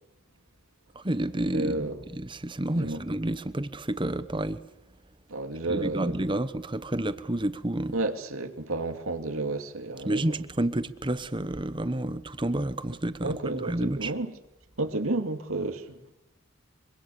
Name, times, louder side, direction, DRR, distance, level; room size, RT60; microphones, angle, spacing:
voice 1, 0.9-4.6 5.7-7.9 10.0-14.1, right 1 dB, 25° right, 1.1 m, -30 dB
voice 2, 1.5-2.0 2.7-3.0 5.3-6.1 7.9-10.3 13.2-14.3 14.8-16.1, right 2 dB, 90° right, 2.4 m, -31 dB
25.0 x 24.5 x 7.0 m
head